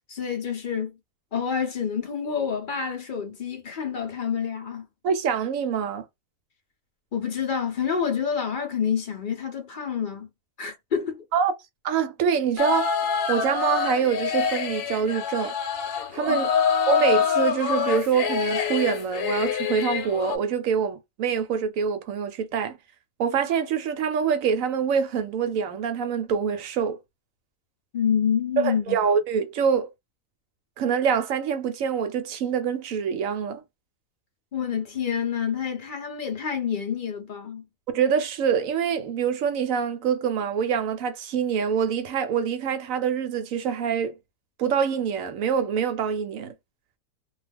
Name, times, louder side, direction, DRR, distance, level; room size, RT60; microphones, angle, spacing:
voice 1, 0.1-1.0 1.3-4.9 7.1-10.3 10.6-11.2 16.3-16.5 27.9-29.0 34.5-37.6, left 7 dB, 55° left, 0.5 m, -28 dB
voice 2, 5.0-6.0 11.3-11.5 11.8-12.9 13.3-15.5 16.1-16.5 16.9-22.8 23.2-27.0 28.6-29.9 30.8-33.6 37.9-44.2 44.6-46.5, right 7 dB, 65° right, 0.9 m, -25 dB
sound 1, 12.6-20.4, left 7 dB, 75° left, 1.1 m, -26 dB
2.4 x 2.3 x 3.4 m
omnidirectional pair, 1.6 m